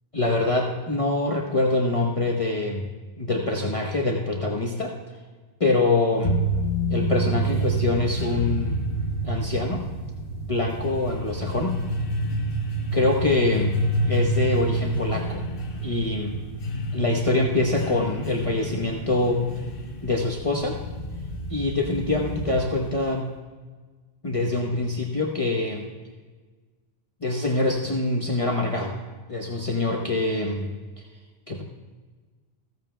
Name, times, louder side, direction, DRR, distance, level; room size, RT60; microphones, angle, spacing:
voice 1, 0.1-2.9 3.2-4.9 5.6-6.3 6.9-8.8 9.2-9.8 10.4-11.8 12.9-15.5 15.8-16.4 16.9-19.4 20.0-20.8 21.5-23.3 24.2-25.9 27.2-29.0 29.3-30.7 31.0-31.1 31.5-31.6, left 2 dB, 35° left, -1 dB, 1.0 m, -24 dB
sound 1, 6.2-23.0, right 1 dB, 60° left, 1.3 m, -28 dB
15.5 x 14.5 x 2.2 m, 1.4 s
omnidirectional pair, 1.1 m